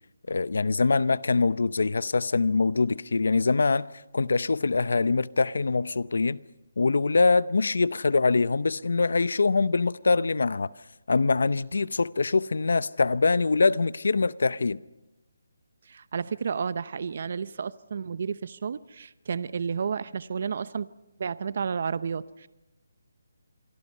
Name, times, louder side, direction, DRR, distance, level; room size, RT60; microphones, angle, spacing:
voice 1, 0.3-3.9 4.1-6.4 6.8-10.7 11.1-14.8, left 4 dB, 75° left, 0.7 m, -24 dB
voice 2, 15.9-20.9 21.2-22.5, right 6 dB, 50° right, 0.8 m, -31 dB
27.0 x 23.0 x 5.6 m
hypercardioid pair, 165°, 0 cm